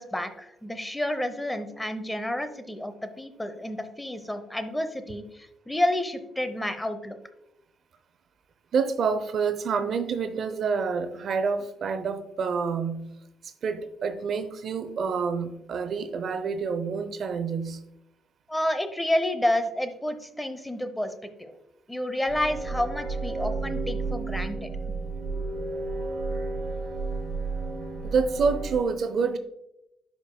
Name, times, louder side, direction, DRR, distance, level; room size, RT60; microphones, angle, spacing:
voice 1, 0.0-7.2 18.5-21.1 21.4-21.5 21.9-24.7, left 1 dB, 10° left, 10 dB, 0.7 m, -30 dB
voice 2, 8.7-13.1 13.4-17.8 28.0-29.4, right 5 dB, 60° right, 9 dB, 0.6 m, -28 dB
sound 1, 22.3-28.8, right 3 dB, 75° right, 2.2 m, -32 dB
11.5 x 5.2 x 2.3 m, 0.85 s
cardioid pair, 90°, 0 cm